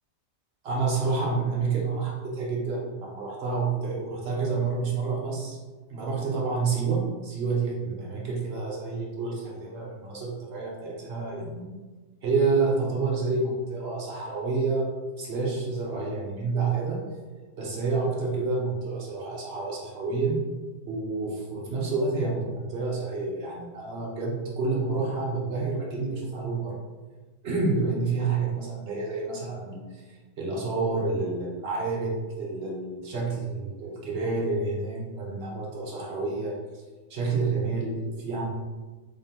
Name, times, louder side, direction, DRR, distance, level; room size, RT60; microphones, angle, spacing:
voice 1, 0.6-5.6 5.9-11.7 12.2-14.9 15.2-17.0 17.6-20.4 20.9-26.8 27.4-36.8 37.1-38.5, right 4 dB, 50° right, -3 dB, 0.8 m, -29 dB
3.8 x 3.6 x 2.8 m, 1.3 s
omnidirectional pair, 1.7 m